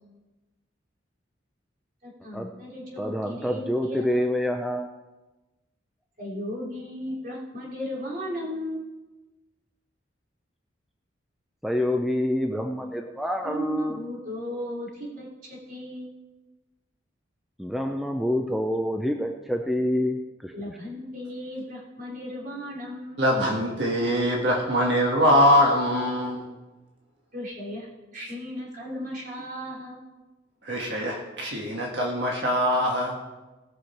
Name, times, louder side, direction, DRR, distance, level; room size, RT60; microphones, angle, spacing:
voice 1, 2.0-4.4 6.2-8.9 13.4-16.1 20.5-23.2 27.3-30.0, equal, 45° right, -5 dB, 3.9 m, -36 dB
voice 2, 3.0-4.9 11.6-14.0 17.6-20.5, left 1 dB, ahead, 3 dB, 0.5 m, -27 dB
voice 3, 23.2-26.4 30.6-33.2, equal, 65° right, -1 dB, 1.6 m, -23 dB
18.5 x 6.4 x 4.4 m, 1.1 s
head